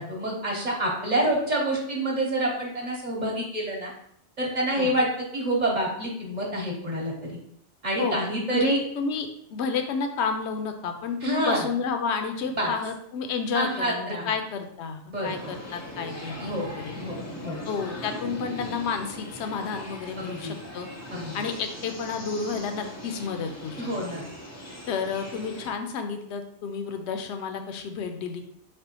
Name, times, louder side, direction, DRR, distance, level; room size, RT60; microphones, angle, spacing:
voice 1, 0.0-3.9 4.4-7.4 7.8-8.8 11.2-11.7 12.5-12.7 13.5-14.4 15.1-15.3 16.4-16.7 17.0-17.6 20.2-20.5 21.1-21.3 23.8-24.2, right 1 dB, 45° right, -2 dB, 1.0 m, -27 dB
voice 2, 8.5-17.0 17.7-20.9 21.3-23.8 24.1-24.2 24.9-28.4, left 5 dB, 80° left, 6 dB, 0.9 m, -31 dB
sound 1, 15.2-25.7, equal, 20° left, 0.5 m, -40 dB
4.5 x 3.4 x 2.9 m, 0.69 s
omnidirectional pair, 1.1 m